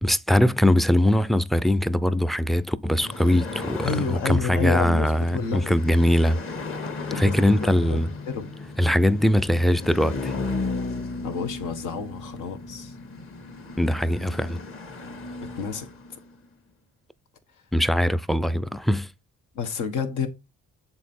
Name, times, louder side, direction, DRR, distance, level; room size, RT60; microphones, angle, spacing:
voice 1, 0.0-6.4 7.2-8.1 8.8-10.3 13.8-14.6 17.7-19.1, left 1 dB, ahead, 0.3 m, -21 dB
sound 1, 3.0-16.4, left 3 dB, 45° left, 1.4 m, -35 dB
voice 2, 3.8-5.7 7.1-8.0 8.3-8.5 11.2-13.0 15.4-15.9 19.5-20.3, left 6 dB, 85° left, 1.2 m, -30 dB
7.2 x 3.9 x 4.2 m
cardioid pair, 90°, 30 cm